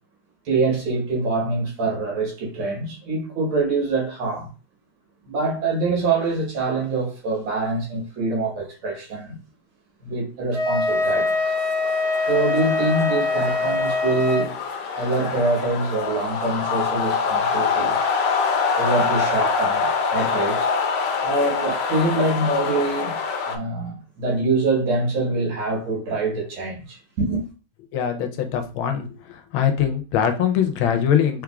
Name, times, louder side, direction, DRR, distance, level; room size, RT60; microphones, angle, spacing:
voice 1, 0.5-4.5 5.3-9.4 10.0-11.5 12.3-14.5 15.0-18.0 18.8-20.7 21.2-23.2 23.5-27.4, right 3 dB, 80° right, 2.1 m, -24 dB
Wind instrument woodwind instrument, 10.5-14.5, left 3 dB, 65° right, 1.5 m, -23 dB
sound 1, 10.9-23.6, left 5 dB, 70° left, 1.1 m, -25 dB
voice 2, 27.9-31.4, left 8 dB, 90° left, 1.5 m, -22 dB
4.8 x 3.5 x 2.3 m
omnidirectional pair, 2.2 m